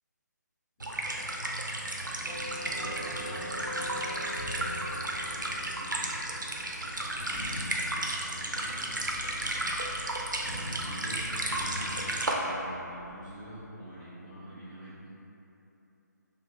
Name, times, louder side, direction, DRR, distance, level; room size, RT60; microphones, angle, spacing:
sound 1, 0.8-12.3, right 1 dB, 85° right, 0.4 m, -33 dB
voice 1, 2.1-6.3 6.8-9.6 10.4-15.2, right 1 dB, 10° left, -20 dB, 1.1 m, -46 dB
Doorbell, 2.3-11.1, equal, 65° left, 1.2 m, -45 dB
sound 2, 4.4-5.8 6.6-13.6, left 1 dB, 35° left, 1.0 m, -45 dB
3.2 x 2.2 x 2.7 m, 2.9 s
figure-of-eight pair, 145°, 10 cm